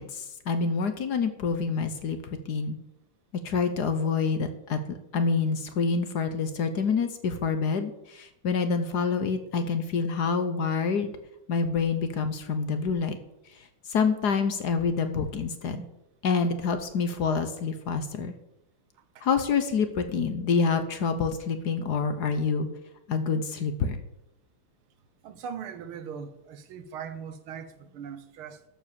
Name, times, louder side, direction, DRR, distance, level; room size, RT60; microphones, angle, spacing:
voice 1, 0.0-2.2 2.5-2.8 3.4-11.1 11.5-13.2 13.9-15.9 16.2-18.3 19.2-22.7 23.1-24.0, left 5 dB, 55° left, 1.4 m, -27 dB
voice 2, 25.2-28.6, right 7 dB, 85° right, 1.9 m, -40 dB
12.5 x 7.3 x 6.9 m
omnidirectional pair, 2.3 m